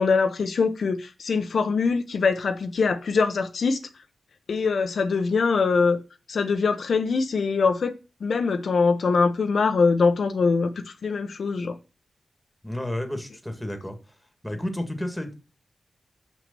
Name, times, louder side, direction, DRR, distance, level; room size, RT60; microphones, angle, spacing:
voice 1, 0.0-3.8 4.5-6.0 6.3-7.9 8.2-11.8, left 4 dB, 65° left, 0.8 m, -23 dB
voice 2, 12.6-14.2 14.4-15.3, left 1 dB, 5° left, 1.7 m, -31 dB
6.7 x 6.1 x 6.7 m
wide cardioid pair, 150°, 0 cm